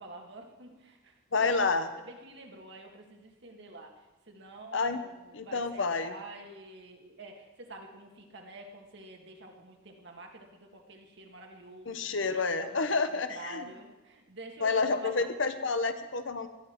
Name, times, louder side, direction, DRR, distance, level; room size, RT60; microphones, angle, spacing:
voice 1, 0.0-1.6 2.0-12.2 12.6-15.3, right 2 dB, 65° right, 2 dB, 2.0 m, -48 dB
voice 2, 1.3-1.9 4.7-5.0 5.3-6.1 11.9-13.6 14.6-16.5, left 4 dB, 75° left, 9 dB, 1.0 m, -29 dB
17.0 x 12.0 x 4.6 m, 1.1 s
head